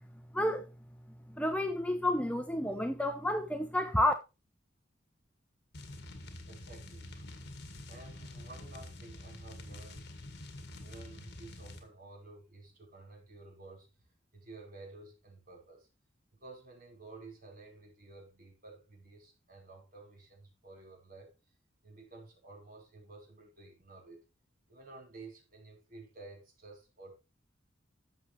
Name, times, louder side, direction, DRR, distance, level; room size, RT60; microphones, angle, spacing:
voice 1, 0.3-0.7 1.3-4.1, left 1 dB, 5° left, 0.7 m, -30 dB
sound 1, 5.7-11.9, left 1 dB, 55° left, 2.1 m, -47 dB
voice 2, 6.5-7.2 7.9-10.1 10.8-13.9 14.3-15.9 16.4-21.3 21.8-24.2 24.7-27.1, right 3 dB, 45° right, 4.6 m, -52 dB
12.5 x 7.2 x 3.2 m
head